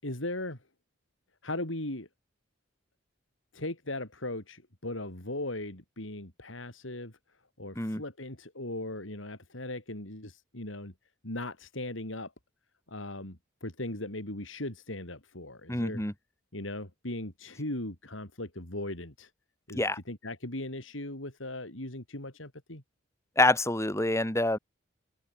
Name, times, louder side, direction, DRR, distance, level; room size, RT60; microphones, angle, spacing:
voice 1, 0.0-0.6 1.4-2.1 3.5-7.2 7.6-10.9 11.2-12.3 12.9-16.0 16.5-19.3 19.7-22.8, left 1 dB, 85° left, 5.2 m, -38 dB
voice 2, 15.7-16.1 19.7-20.0 23.4-24.6, left 2 dB, 15° left, 3.3 m, -26 dB
open air
head